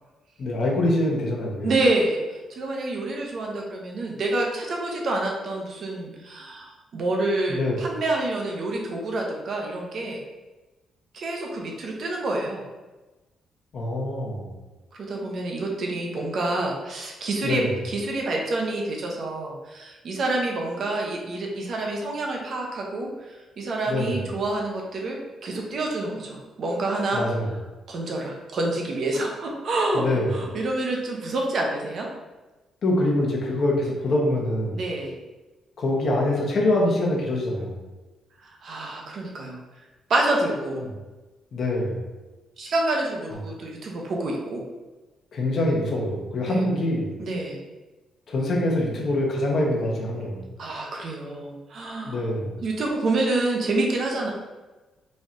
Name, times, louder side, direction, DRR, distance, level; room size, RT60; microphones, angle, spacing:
voice 1, 0.4-1.7 7.5-7.8 13.7-14.5 17.4-17.7 23.9-24.2 27.1-27.5 29.9-30.4 32.8-34.8 35.8-37.8 40.8-40.9 41.5-42.0 45.3-47.1 48.3-50.4 52.1-52.6, left 1 dB, 45° left, -2 dB, 0.8 m, -24 dB
voice 2, 1.6-10.2 11.1-12.6 15.0-27.2 27.9-30.1 30.3-32.1 34.7-35.2 38.4-39.6 40.1-40.8 42.6-44.6 46.5-46.6 47.2-47.6 50.6-52.3 52.6-54.3, right 2 dB, 45° right, 0 dB, 0.7 m, -27 dB
4.1 x 3.1 x 2.5 m, 1.2 s
cardioid pair, 160°, 0 cm